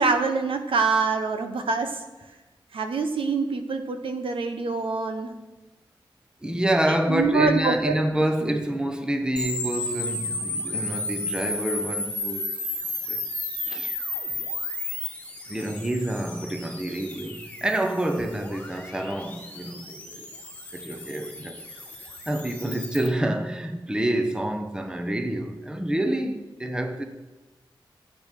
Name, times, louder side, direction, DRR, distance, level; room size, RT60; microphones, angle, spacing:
voice 1, 0.0-2.0 2.7-5.3 7.1-8.0 8.4-8.6, right 4 dB, 80° right, 1.3 m, -25 dB
voice 2, 6.4-12.5 13.1-13.2 13.6-14.0 15.5-20.3 20.7-21.6 22.3-27.0, right 1 dB, 10° right, 0.9 m, -27 dB
sound 1, 9.4-23.1, left 2 dB, 15° left, 1.6 m, -33 dB
15.5 x 8.9 x 6.0 m
wide cardioid pair, 155°, 9 cm